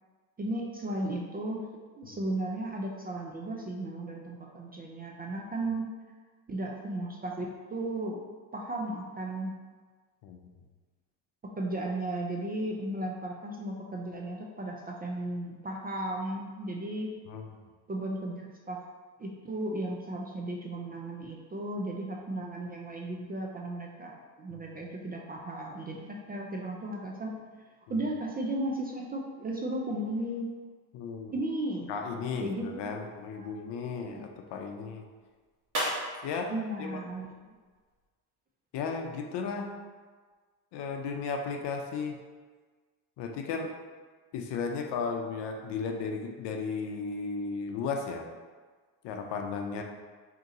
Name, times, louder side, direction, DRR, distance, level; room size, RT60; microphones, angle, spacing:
voice 1, 0.4-1.7 1.9-5.9 6.5-8.2 8.5-9.6 11.6-17.1 17.9-18.8 19.2-27.3 27.9-30.5 31.3-31.9 32.4-32.9 33.4-33.5 34.0-34.3 36.5-37.3, right 1 dB, 20° right, 0 dB, 0.4 m, -35 dB
voice 2, 30.9-31.3 31.9-35.0 36.2-37.0 38.7-39.7 40.7-42.2 43.2-43.7 44.3-48.3 49.0-49.8, left 5 dB, 60° left, 3 dB, 0.7 m, -35 dB
sound 1, 32.7-38.1, equal, 40° right, 1.5 m, -41 dB
3.8 x 2.9 x 3.7 m, 1.5 s
supercardioid pair, 75°, 49 cm